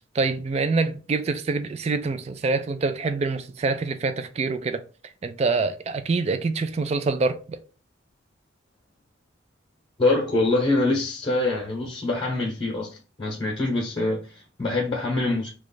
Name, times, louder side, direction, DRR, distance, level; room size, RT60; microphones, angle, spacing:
voice 1, 0.1-4.8 5.2-7.6, right 3 dB, 35° right, 0.3 m, -25 dB
voice 2, 10.0-15.5, left 2 dB, 30° left, 0.9 m, -25 dB
3.1 x 2.3 x 3.9 m
head